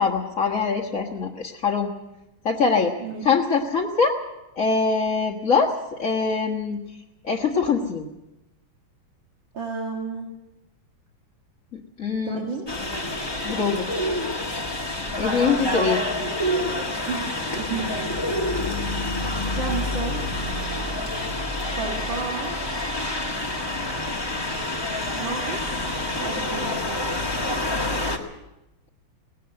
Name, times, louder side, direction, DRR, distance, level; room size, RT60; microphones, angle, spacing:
voice 1, 0.0-1.9 2.5-3.0 3.2-4.2 4.6-6.8 7.2-8.1 12.0-12.4 13.4-13.9 15.2-16.0, left 5 dB, 45° left, -3 dB, 1.8 m, -23 dB
voice 2, 9.5-10.3 12.2-12.7 15.7-16.1 17.1-18.1 19.6-20.2 21.8-22.5 25.2-25.8 26.2-26.8, right 4 dB, 70° right, -1 dB, 2.9 m, -31 dB
sound 1, 12.7-28.2, left 1 dB, 15° left, 1.7 m, -27 dB
19.0 x 18.0 x 7.8 m, 0.95 s
omnidirectional pair, 2.1 m